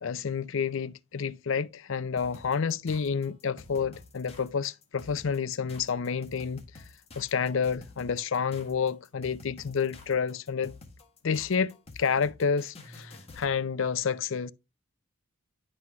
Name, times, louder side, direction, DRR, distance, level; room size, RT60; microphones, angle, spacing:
voice 1, 0.0-6.6 7.2-10.7 11.2-14.5, left 6 dB, 60° left, 0.5 m, -29 dB
sound 1, 2.2-13.5, left 3 dB, 30° left, 1.6 m, -49 dB
11.0 x 6.2 x 2.4 m
head